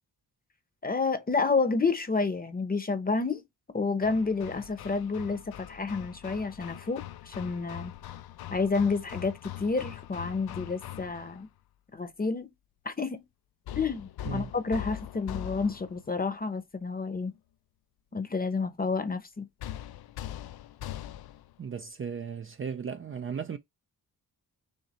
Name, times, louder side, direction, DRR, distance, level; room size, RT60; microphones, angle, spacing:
voice 1, 0.8-3.4 3.7-7.9 8.5-9.3 9.6-11.5 11.9-12.5 12.8-13.2 13.8-17.3 18.1-19.5, left 4 dB, 25° left, 0.8 m, -29 dB
Hammer, 4.0-11.4 13.7-16.1 19.6-21.5, left 12 dB, 80° left, 0.5 m, -41 dB
voice 2, 21.6-23.6, right 6 dB, 35° right, 0.4 m, -36 dB
6.5 x 2.6 x 3.1 m
wide cardioid pair, 120°, 37 cm